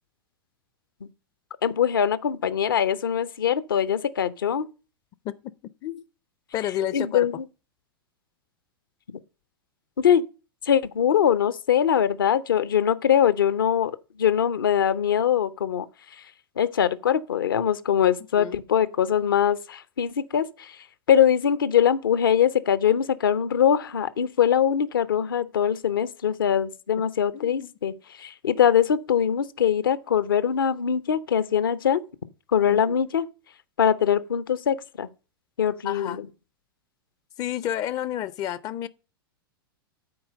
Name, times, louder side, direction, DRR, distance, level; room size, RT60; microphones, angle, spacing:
voice 1, 1.6-4.7 6.9-7.4 10.0-10.3 10.6-13.9 14.2-15.9 16.6-20.8 21.1-32.0 32.5-33.2 33.8-35.1 35.6-36.3, left 9 dB, 65° left, 0.7 m, -22 dB
voice 2, 6.5-7.3 18.3-18.6 27.3-27.7 32.6-33.0 35.8-36.2 37.4-38.9, left 11 dB, 30° left, 0.5 m, -30 dB
8.7 x 4.4 x 6.5 m
figure-of-eight pair, 95°, 12 cm